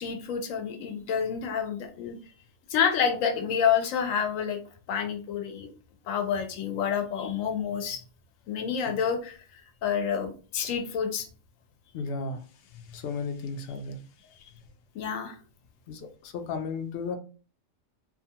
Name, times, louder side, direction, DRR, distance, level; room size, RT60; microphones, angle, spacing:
voice 1, 0.0-2.2 2.7-4.6 4.9-5.7 6.1-8.0 8.5-11.3 14.9-15.4, left 7 dB, 85° left, 6 dB, 1.0 m, -28 dB
voice 2, 11.9-12.4 12.9-14.0 15.9-17.2, left 4 dB, 60° left, 6 dB, 0.7 m, -34 dB
2.6 x 2.3 x 2.7 m, 0.37 s
omnidirectional pair, 1.3 m